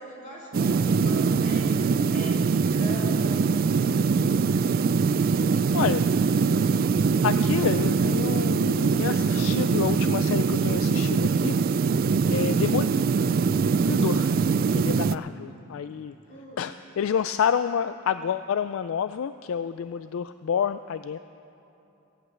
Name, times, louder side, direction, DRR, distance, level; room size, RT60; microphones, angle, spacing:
voice 1, 0.0-3.5 16.3-16.8, equal, 35° left, -5 dB, 3.8 m, -42 dB
sound 1, 0.5-15.2, right 5 dB, 45° right, 0.3 m, -23 dB
voice 2, 5.7-6.1 7.2-11.9 12.3-12.9 13.9-14.4 14.7-16.1 16.6-21.2, left 7 dB, 65° left, 12 dB, 0.3 m, -29 dB
17.0 x 7.9 x 8.9 m, 2.9 s
head